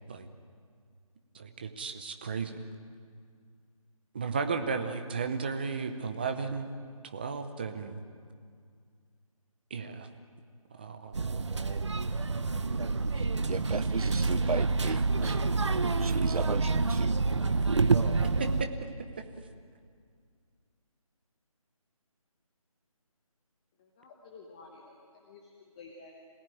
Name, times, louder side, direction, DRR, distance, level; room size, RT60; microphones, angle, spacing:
voice 1, 1.3-2.6 4.1-6.7 7.0-8.0 9.7-10.1 10.8-11.1 18.4-18.7, right 5 dB, 15° right, 7 dB, 0.9 m, -34 dB
sound 1, 11.1-18.6, right 3 dB, 55° right, 1.1 m, -28 dB
voice 2, 13.5-15.4 16.0-17.2, right 4 dB, 85° right, 18 dB, 0.8 m, -34 dB
voice 3, 23.8-26.1, left 4 dB, 10° left, -1 dB, 1.0 m, -52 dB
26.5 x 18.0 x 9.2 m, 2.1 s
figure-of-eight pair, 170°, 18 cm